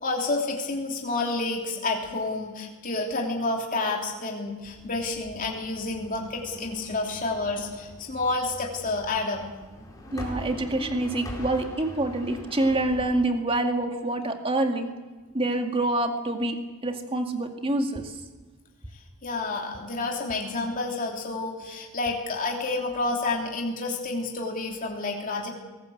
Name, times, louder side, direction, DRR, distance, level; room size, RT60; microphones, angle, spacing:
voice 1, 0.0-9.4 19.2-25.5, left 3 dB, 35° left, 0 dB, 3.1 m, -29 dB
sound 1, 4.6-13.2, equal, 15° left, 4.8 m, -42 dB
voice 2, 10.1-14.9 15.3-16.6 16.8-18.2, right 2 dB, 25° right, 5 dB, 2.1 m, -26 dB
23.0 x 19.0 x 7.9 m, 1.3 s
head